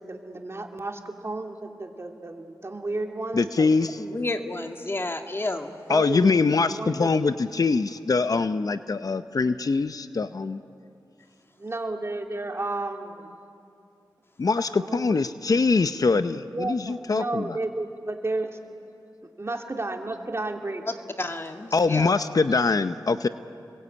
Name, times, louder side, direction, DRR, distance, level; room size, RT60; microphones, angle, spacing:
voice 1, 0.0-3.7 5.9-6.3 6.7-7.1 11.6-13.3 14.5-15.2 16.5-18.6 19.4-20.8 23.1-23.2, right 2 dB, 35° right, 3 dB, 2.6 m, -32 dB
voice 2, 3.3-4.0 5.9-10.6 14.4-17.6 21.7-23.3, left 4 dB, 55° left, 11 dB, 0.7 m, -23 dB
voice 3, 4.0-5.8 21.2-22.1, left 2 dB, 30° left, 5 dB, 1.9 m, -31 dB
30.0 x 22.0 x 8.6 m, 2.6 s
wide cardioid pair, 65°, 8 cm